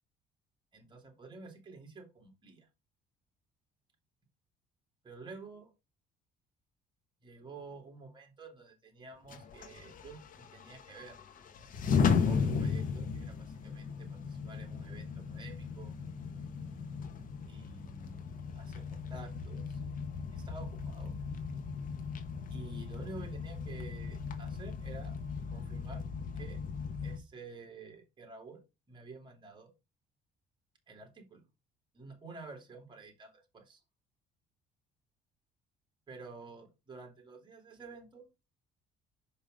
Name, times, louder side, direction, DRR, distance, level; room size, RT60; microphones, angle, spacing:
voice 1, 0.7-2.7 5.0-5.7 7.2-10.2 10.5-11.2 12.2-16.0 17.5-18.2 18.5-19.8 20.3-21.2 22.5-25.2 25.5-26.0 26.3-26.6 27.0-28.6 28.9-29.7 30.9-31.4 31.9-33.8 36.1-38.2, right 3 dB, 30° right, 3 dB, 3.0 m, -50 dB
sound 1, 9.3-27.2, left 6 dB, 55° left, 1.3 m, -36 dB
5.4 x 5.2 x 6.4 m, 0.26 s
cardioid pair, 110°, 17 cm